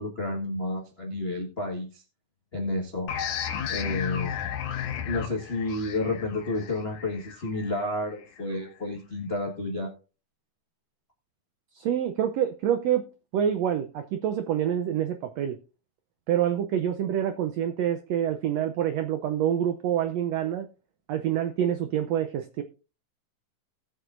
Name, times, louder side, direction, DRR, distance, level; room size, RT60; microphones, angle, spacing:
voice 1, 0.0-2.0 2.5-3.1 3.7-4.3 5.1-9.9, left 2 dB, 55° left, -1 dB, 0.6 m, -31 dB
sound 1, 3.1-8.4, left 9 dB, 70° left, 2.4 m, -34 dB
voice 2, 11.7-13.1 13.3-15.6 16.3-20.7 21.1-22.6, right 10 dB, 80° right, 8 dB, 1.5 m, -27 dB
19.0 x 6.5 x 2.5 m, 0.34 s
omnidirectional pair, 3.8 m